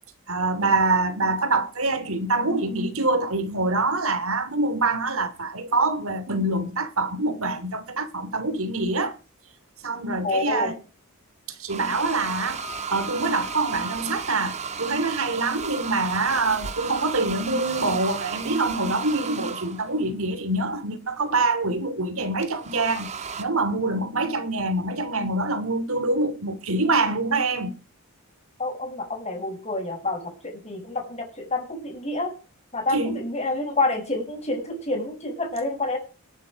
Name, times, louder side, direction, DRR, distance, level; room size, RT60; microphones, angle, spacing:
voice 1, 0.3-9.2 9.8-10.8 11.6-12.6 12.9-23.1 23.4-27.7 32.9-33.2, right 2 dB, 65° right, 2.8 m, -25 dB
voice 2, 10.2-10.7 28.6-32.3 32.7-36.0, left 2 dB, 30° left, 6.2 m, -28 dB
sound 1, 11.7-20.0 22.4-23.4, right 6 dB, 30° right, 1.6 m, -34 dB
sound 2, 12.3-15.2 15.6-16.3 16.7-18.2, left 1 dB, 75° left, 6.6 m, -45 dB
19.5 x 9.9 x 5.2 m
head